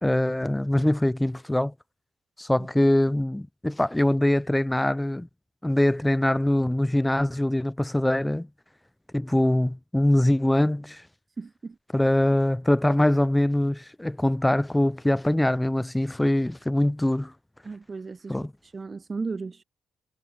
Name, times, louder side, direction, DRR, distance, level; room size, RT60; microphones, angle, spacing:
voice 1, 0.0-1.7 2.4-5.3 5.6-8.5 9.1-11.0 11.9-17.3 18.3-18.5, left 1 dB, 5° left, 3.0 m, -23 dB
voice 2, 11.4-11.8 17.6-18.4 18.7-19.6, right 4 dB, 30° right, 2.0 m, -35 dB
cardioid pair, 90°, 0 cm